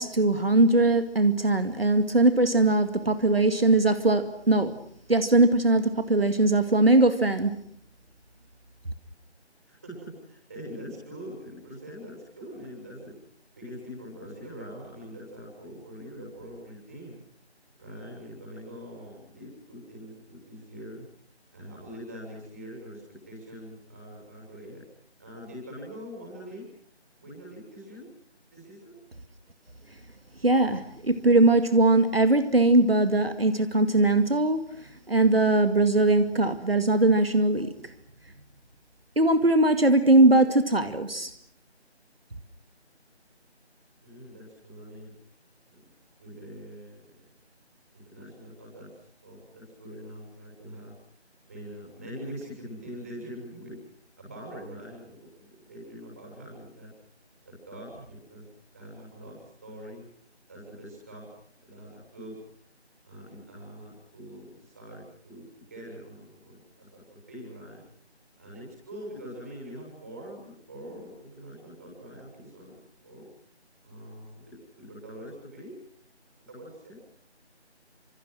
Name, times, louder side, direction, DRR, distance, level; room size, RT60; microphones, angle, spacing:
voice 1, 0.0-4.7 5.1-7.6 30.4-37.7 39.2-41.3, right 2 dB, 60° right, 2.2 m, -21 dB
voice 2, 9.6-13.1 13.6-17.2 17.8-21.0 21.5-24.8 25.2-26.7 27.2-28.1 28.5-29.0 44.0-45.1 45.7-45.8 46.2-47.2 47.9-50.9 51.5-53.8 54.2-56.9 57.4-58.4 58.7-60.0 60.5-61.3 61.6-62.4 63.0-67.8 68.4-72.8 73.0-73.2 73.8-75.7 76.5-76.9, equal, 15° right, 7.9 m, -43 dB
30.0 x 27.0 x 6.3 m
figure-of-eight pair, 180°, 34 cm